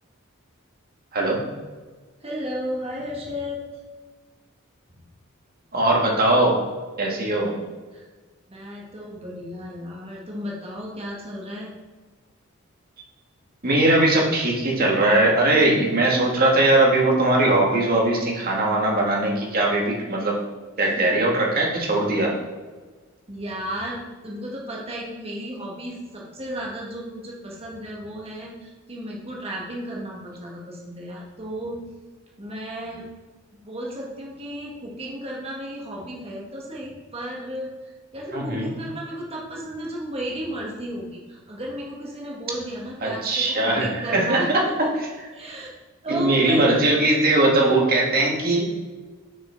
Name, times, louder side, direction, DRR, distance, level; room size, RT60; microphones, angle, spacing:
voice 1, 2.2-3.6 7.9-8.1 8.5-11.7 20.8-21.2 23.3-31.8 32.4-33.1 33.6-44.5 45.3-45.7 46.0-46.6, equal, 30° right, -3 dB, 1.6 m, -34 dB
voice 2, 5.7-6.6 7.0-7.5 13.6-20.4 20.8-22.3 38.3-38.7 43.0-44.9 46.1-48.7, right 2 dB, 45° right, -2 dB, 1.9 m, -20 dB
6.5 x 6.0 x 4.5 m, 1.4 s
head